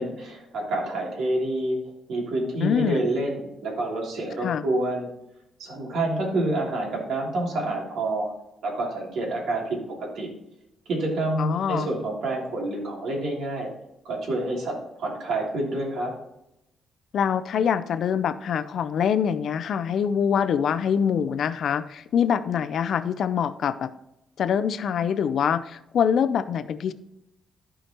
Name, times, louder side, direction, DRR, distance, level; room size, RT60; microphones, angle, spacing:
voice 1, 0.0-1.8 2.1-5.1 5.6-8.3 8.6-9.8 10.1-10.3 10.9-13.7 14.0-16.1, right 2 dB, 75° right, -2 dB, 2.9 m, -28 dB
voice 2, 2.6-3.1 4.4-4.6 11.4-11.9 17.1-23.9 24.4-26.9, left 7 dB, 65° left, 13 dB, 0.5 m, -24 dB
14.0 x 5.0 x 3.0 m, 0.85 s
cardioid pair, 125°, 0 cm